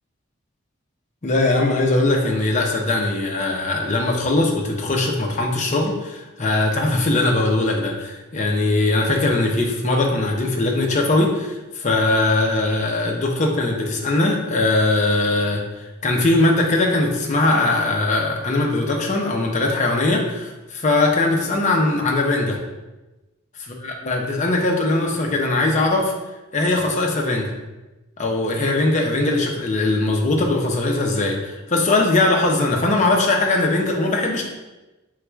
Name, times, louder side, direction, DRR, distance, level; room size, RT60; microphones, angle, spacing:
voice 1, 1.2-22.6 24.0-26.1 26.5-27.5 28.2-34.4, left 2 dB, 35° left, 1 dB, 0.6 m, -20 dB
4.7 x 3.9 x 2.3 m, 1.1 s
head